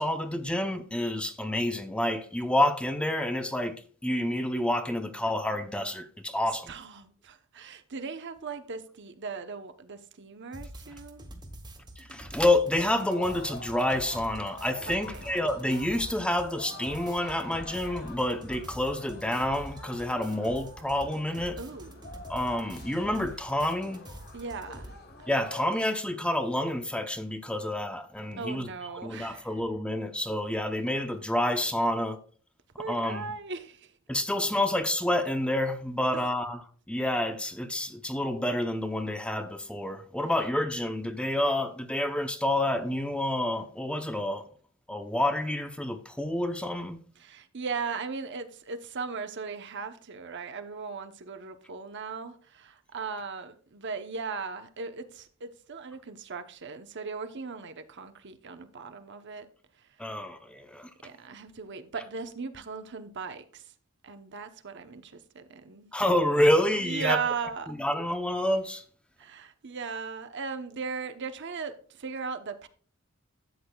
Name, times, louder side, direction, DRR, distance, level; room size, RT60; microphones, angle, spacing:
voice 1, 0.0-3.8 4.0-6.7 12.0-21.6 22.3-24.0 25.3-28.7 29.0-32.2 32.9-33.3 34.1-44.4 44.9-47.0 60.0-60.9 65.9-67.2 67.7-68.8, left 1 dB, 5° left, 0.7 m, -28 dB
voice 2, 6.7-11.2 14.9-15.3 21.4-22.1 24.3-24.9 25.2-25.3 28.4-29.5 32.8-33.9 47.2-59.5 60.1-60.2 61.0-63.7 64.0-65.9 66.8-67.7 69.2-72.7, right 5 dB, 55° right, 0.9 m, -38 dB
sound 1, 10.5-25.0, right 1 dB, 20° right, 1.8 m, -46 dB
sound 2, 12.9-25.8, left 3 dB, 50° left, 1.5 m, -47 dB
12.5 x 8.5 x 2.3 m
head